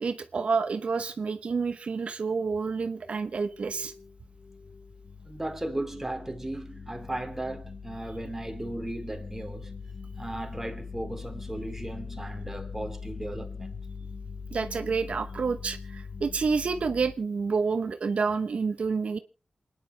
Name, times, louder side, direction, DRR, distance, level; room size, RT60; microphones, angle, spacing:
voice 1, 0.0-3.9 14.5-19.2, right 5 dB, 80° right, 0.9 m, -29 dB
sound 1, 3.0-17.2, left 5 dB, 60° left, 1.3 m, -42 dB
voice 2, 5.2-9.8 10.2-13.8, right 1 dB, 15° right, 2.8 m, -36 dB
28.0 x 10.0 x 3.3 m
wide cardioid pair, 95°, 2 cm